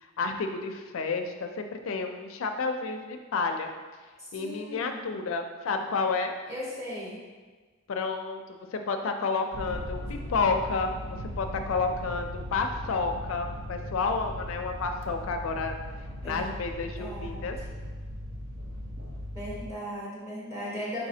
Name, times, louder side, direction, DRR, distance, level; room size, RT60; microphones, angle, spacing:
voice 1, 0.2-3.7 4.3-6.3 7.9-15.8 16.2-17.6, left 4 dB, 70° left, 5 dB, 0.4 m, -30 dB
voice 2, 4.2-5.1 6.5-7.2 16.2-16.4 17.0-17.5 19.3-21.1, equal, 15° right, -7 dB, 1.2 m, -37 dB
sound 1, 9.5-19.7, left 1 dB, 65° right, 0.5 m, -38 dB
4.4 x 4.1 x 2.7 m, 1.4 s
head